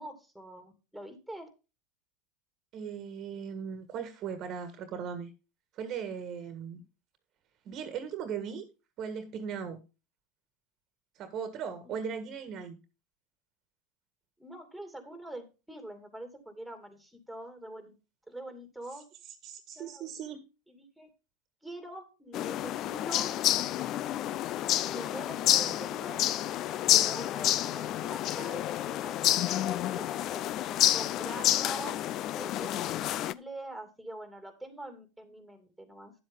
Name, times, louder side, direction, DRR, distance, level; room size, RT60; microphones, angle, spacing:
voice 1, 0.0-1.5 14.4-17.9 18.3-19.0 19.7-20.2 20.7-21.1 21.6-23.4 24.9-26.2 27.0-30.5 30.9-32.0 32.3-36.1, right 1 dB, ahead, 2.6 m, -44 dB
voice 2, 2.7-5.3 5.7-6.8 7.6-8.7 9.0-9.8 11.2-12.8 19.4-20.4 25.6-25.8, right 7 dB, 45° right, 1.6 m, -38 dB
sound 1, 22.3-33.3, left 13 dB, 45° left, 0.5 m, -29 dB
10.0 x 7.8 x 3.7 m
hypercardioid pair, 105°, 0 cm